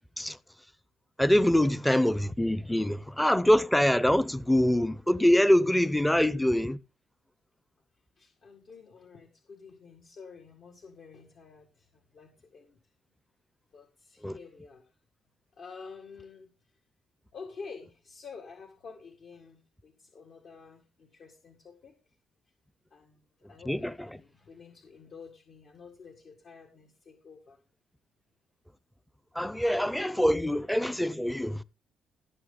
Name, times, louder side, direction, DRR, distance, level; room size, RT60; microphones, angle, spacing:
voice 1, 1.2-6.8 14.2-14.4 23.7-24.2 29.3-31.6, left 1 dB, 5° left, 0.6 m, -24 dB
voice 2, 8.2-12.8 13.7-14.9 15.6-16.5 17.3-22.2 22.9-27.6, left 5 dB, 60° left, 1.9 m, -49 dB
16.5 x 6.9 x 3.8 m
cardioid pair, 90°, 0 cm